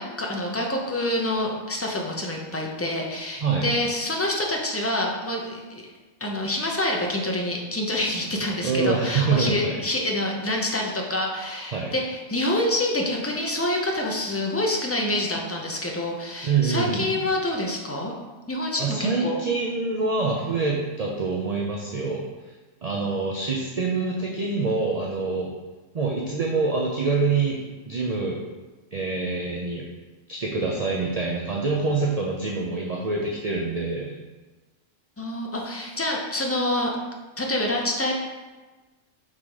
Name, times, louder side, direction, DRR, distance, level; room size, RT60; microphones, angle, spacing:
voice 1, 0.0-5.8 6.2-18.1 18.5-19.4 35.2-36.9 37.4-38.1, left 1 dB, 15° left, 0 dB, 0.5 m, -27 dB
voice 2, 3.4-3.7 8.6-9.8 11.7-11.9 16.4-17.2 18.8-22.2 22.8-25.5 25.9-28.4 28.9-29.8 30.3-34.1, right 4 dB, 45° right, -1 dB, 0.5 m, -25 dB
5.8 x 3.6 x 4.8 m, 1.2 s
omnidirectional pair, 1.4 m